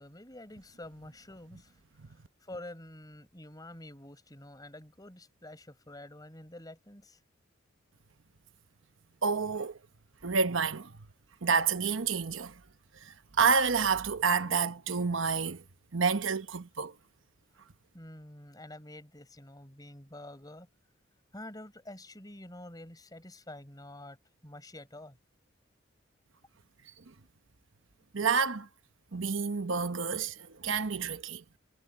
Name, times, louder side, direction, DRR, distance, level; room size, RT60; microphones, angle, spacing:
voice 1, 0.0-7.2 17.9-20.7 21.3-24.2 24.4-25.2, left 1 dB, 20° left, 4.7 m, -48 dB
voice 2, 9.2-9.8 10.2-10.9 11.4-12.6 13.0-15.6 15.9-16.9 27.0-27.1 28.1-28.7 29.1-31.4, right 5 dB, 80° right, 1.0 m, -29 dB
head